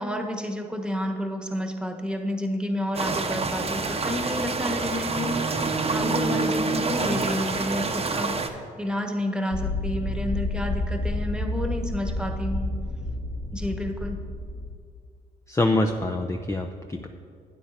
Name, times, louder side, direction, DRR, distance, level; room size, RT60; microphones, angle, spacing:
voice 1, 0.0-12.7 13.5-14.2, left 1 dB, 5° right, 3 dB, 1.3 m, -30 dB
sound 1, 2.9-8.5, right 3 dB, 35° right, 0.9 m, -28 dB
sound 2, 4.5-8.5, right 3 dB, 60° right, 0.7 m, -31 dB
sound 3, 9.5-14.7, left 2 dB, 65° left, 2.2 m, -30 dB
voice 2, 15.5-17.1, left 2 dB, 15° left, 4 dB, 0.6 m, -25 dB
12.5 x 9.0 x 2.6 m, 2.2 s
supercardioid pair, 55°, 18 cm